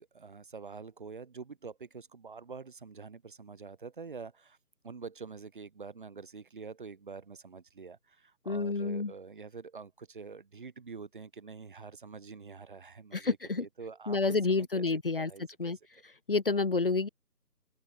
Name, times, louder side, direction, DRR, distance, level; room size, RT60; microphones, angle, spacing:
voice 1, 0.0-4.6 4.8-14.9 15.2-15.7, right 5 dB, 30° right, 7.0 m, -46 dB
voice 2, 8.5-9.1 13.1-13.6 14.1-15.3 15.6-15.8 16.3-17.1, left 4 dB, 35° left, 2.7 m, -29 dB
figure-of-eight pair, 170°, 48 cm